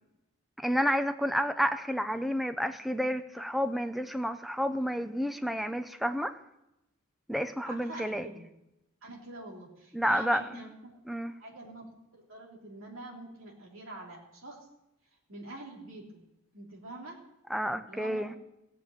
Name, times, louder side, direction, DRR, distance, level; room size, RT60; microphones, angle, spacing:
voice 1, 0.6-6.4 7.3-8.3 9.9-10.4 11.1-11.3 17.5-18.3, equal, ahead, 9 dB, 0.6 m, -30 dB
voice 2, 7.6-8.4 9.0-11.0 11.3-11.9 12.1-14.7 15.3-16.2 16.5-17.2 17.9-18.4, right 1 dB, 70° right, -1 dB, 3.4 m, -45 dB
17.0 x 7.5 x 8.1 m, 0.91 s
head